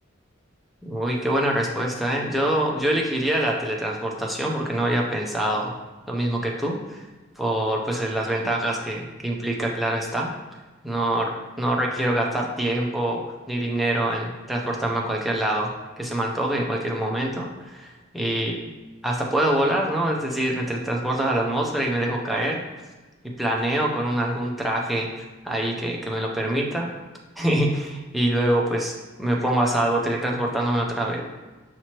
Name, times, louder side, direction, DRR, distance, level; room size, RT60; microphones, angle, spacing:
voice 1, 0.8-5.7 6.1-7.0 7.4-10.3 10.8-13.2 13.5-15.7 16.0-18.6 19.0-22.6 23.4-25.1 25.4-26.9 27.4-31.2, right 1 dB, ahead, -2 dB, 0.5 m, -25 dB
5.9 x 2.9 x 2.9 m, 1.2 s
head